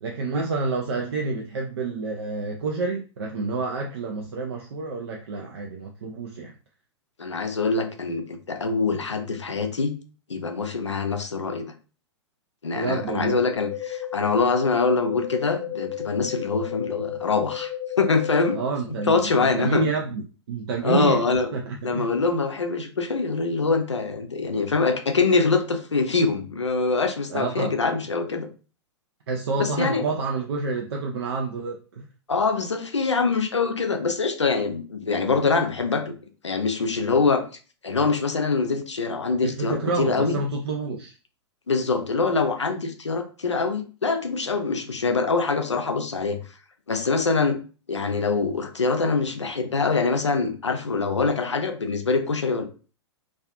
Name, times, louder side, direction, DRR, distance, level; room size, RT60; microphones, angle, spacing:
voice 1, 0.0-6.5 12.7-13.4 18.5-20.2 20.5-21.2 21.5-22.1 27.3-27.7 29.3-32.0 39.4-41.1, right 3 dB, 60° right, 0 dB, 0.4 m, -28 dB
voice 2, 7.2-9.9 10.3-11.7 12.6-17.7 18.0-18.6 19.0-19.9 20.8-21.5 21.8-28.5 29.6-30.0 32.3-36.2 36.4-37.4 37.8-40.4 41.7-46.4 46.9-47.6 47.9-52.7, left 4 dB, 80° left, 6 dB, 0.4 m, -24 dB
sound 1, 13.6-18.6, left 11 dB, 45° left, 0.8 m, -33 dB
2.4 x 2.3 x 2.3 m, 0.36 s
figure-of-eight pair, 100°, 15 cm